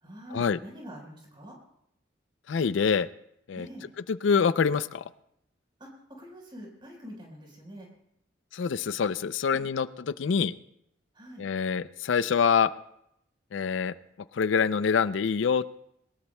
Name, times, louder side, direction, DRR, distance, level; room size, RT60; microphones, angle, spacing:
voice 1, 0.0-1.6 3.6-3.9 5.8-7.9 9.5-9.7 11.1-11.4, equal, 25° right, 0 dB, 4.3 m, -45 dB
voice 2, 2.5-3.1 3.5-3.7 4.1-5.0 8.5-10.5 11.4-12.7 13.5-13.9 14.3-15.8, left 6 dB, 80° left, 15 dB, 0.4 m, -25 dB
21.5 x 19.5 x 2.2 m, 0.76 s
head